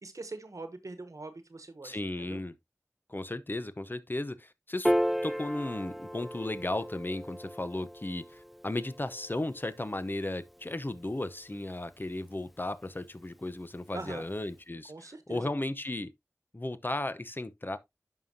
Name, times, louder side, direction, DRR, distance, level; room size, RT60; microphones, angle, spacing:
voice 1, 0.0-2.0 2.2-2.4 13.9-14.2 14.9-15.5, right 3 dB, 75° right, 1.1 m, -42 dB
voice 2, 1.8-2.5 3.1-4.9 5.2-16.1 16.5-17.8, left 2 dB, 35° left, 0.9 m, -35 dB
Piano, 4.8-11.5, equal, ahead, 0.4 m, -35 dB
11.0 x 5.6 x 2.8 m
wide cardioid pair, 45°, 6 cm